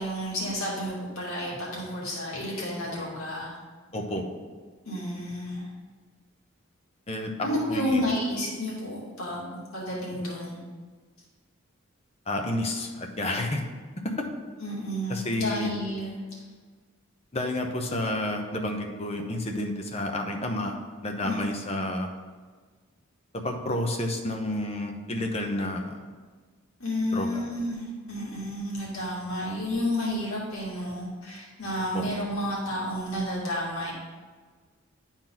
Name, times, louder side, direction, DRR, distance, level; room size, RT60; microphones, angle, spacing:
voice 1, 0.0-3.5 4.8-5.7 7.4-10.6 14.6-16.2 21.2-21.4 26.8-33.9, equal, 80° left, -5 dB, 2.4 m, -31 dB
voice 2, 3.9-4.3 7.1-7.3 7.7-8.0 12.3-13.6 14.0-14.3 15.1-15.7 17.3-20.8 21.0-22.1 23.3-26.0 27.1-27.4 31.9-32.1, left 1 dB, 30° left, 3 dB, 0.8 m, -30 dB
10.5 x 4.4 x 3.9 m, 1.5 s
head